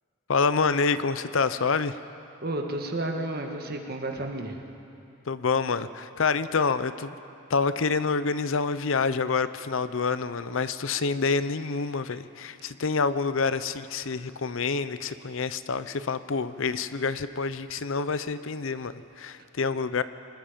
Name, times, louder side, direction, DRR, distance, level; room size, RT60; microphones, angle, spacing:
voice 1, 0.3-2.0 5.3-7.1 7.5-20.0, left 4 dB, 70° left, 13 dB, 0.6 m, -27 dB
voice 2, 2.4-4.6 19.4-19.5, right 1 dB, 45° right, 3 dB, 1.7 m, -32 dB
25.0 x 20.0 x 5.2 m, 2.7 s
head